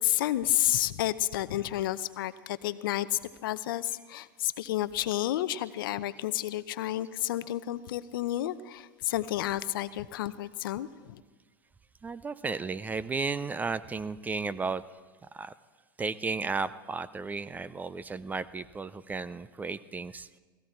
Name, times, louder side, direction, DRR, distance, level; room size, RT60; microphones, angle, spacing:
voice 1, 0.0-11.2, left 14 dB, 70° left, 15 dB, 0.6 m, -31 dB
voice 2, 12.0-14.8 15.3-15.5 16.0-20.3, right 4 dB, 15° right, 16 dB, 0.4 m, -34 dB
16.5 x 15.5 x 4.4 m, 1.4 s
hypercardioid pair, 110°, 12 cm